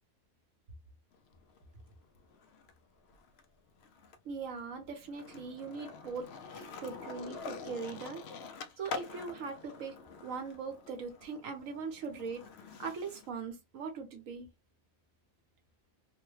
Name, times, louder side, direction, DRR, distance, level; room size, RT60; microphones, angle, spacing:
Skateboard, 1.1-2.7 3.1-13.3, left 4 dB, 65° left, 0.7 m, -47 dB
voice 1, 4.2-8.2 8.8-12.5 12.8-14.5, right 5 dB, 70° right, 1.2 m, -41 dB
3.1 x 2.1 x 3.1 m
omnidirectional pair, 1.5 m